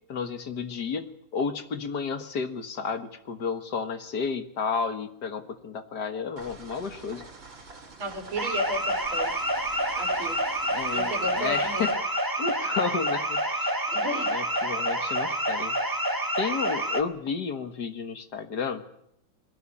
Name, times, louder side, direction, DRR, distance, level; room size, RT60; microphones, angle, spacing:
voice 1, 0.1-7.3 10.7-11.9 12.4-13.7 14.3-15.8 16.4-18.8, left 5 dB, 55° left, 8 dB, 2.0 m, -32 dB
sound 1, 6.4-11.9, right 3 dB, 70° right, 4.3 m, -46 dB
voice 2, 8.0-9.3 10.0-10.4 10.9-11.9 13.9-14.3 14.8-15.0, equal, 90° right, 5 dB, 3.9 m, -34 dB
sound 2, 8.4-17.0, equal, 10° right, 1.2 m, -28 dB
22.0 x 17.5 x 9.9 m, 0.77 s
omnidirectional pair, 2.2 m